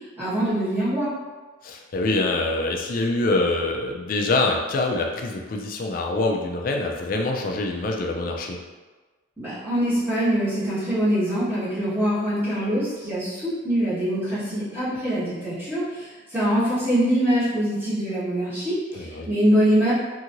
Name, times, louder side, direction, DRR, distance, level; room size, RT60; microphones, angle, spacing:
voice 1, 0.2-1.1 9.4-19.9, equal, 10° right, -13 dB, 1.3 m, -24 dB
voice 2, 1.6-8.6 19.0-19.3, left 2 dB, 45° left, 1 dB, 0.3 m, -25 dB
2.9 x 2.7 x 2.5 m, 1.3 s
head